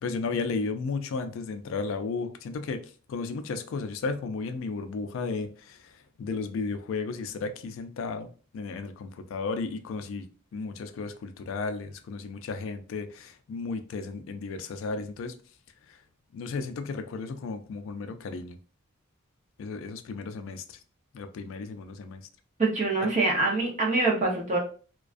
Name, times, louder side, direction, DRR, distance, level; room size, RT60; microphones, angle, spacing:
voice 1, 0.0-2.8 3.1-10.3 10.5-15.3 15.9-16.0 16.3-18.6 19.6-20.8 21.1-22.2, left 4 dB, 70° left, 0.3 m, -34 dB
voice 2, 22.6-24.6, right 3 dB, 35° right, 0.7 m, -25 dB
2.4 x 2.2 x 2.4 m
head